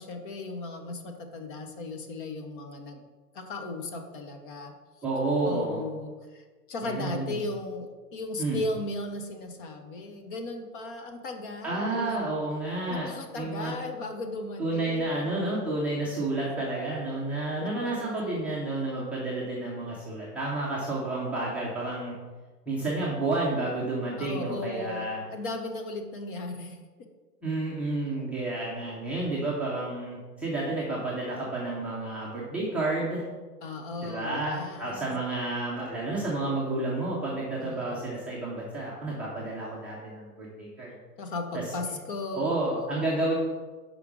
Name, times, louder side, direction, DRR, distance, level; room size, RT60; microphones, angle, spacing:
voice 1, 0.0-3.0 3.3-4.7 5.4-12.2 12.9-15.5 16.6-16.7 17.6-18.6 24.2-26.8 33.6-35.2 37.6-38.1 41.2-43.3, left 2 dB, 35° left, 5 dB, 0.7 m, -36 dB
voice 2, 5.0-5.8 6.8-7.4 8.4-8.6 11.6-13.7 14.6-22.1 22.7-25.2 27.4-33.2 34.0-40.9 41.5-41.6 42.3-43.3, right 2 dB, 5° right, -8 dB, 0.6 m, -30 dB
5.1 x 4.8 x 5.9 m, 1.3 s
hypercardioid pair, 145°, 48 cm